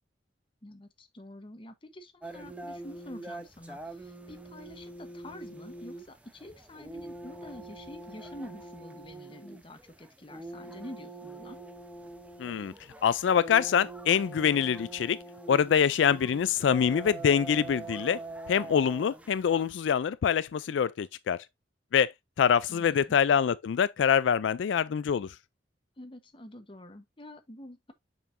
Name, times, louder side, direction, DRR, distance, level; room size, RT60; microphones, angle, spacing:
voice 1, 0.6-11.6 22.7-23.2 26.0-27.9, left 1 dB, 30° left, 1.0 m, -47 dB
sound 1, 2.2-19.7, right 2 dB, 10° right, 0.8 m, -44 dB
voice 2, 12.4-12.7 13.0-15.2 15.5-18.2 18.5-21.4 21.9-25.3, left 7 dB, 85° left, 0.4 m, -25 dB
6.9 x 5.5 x 2.6 m
head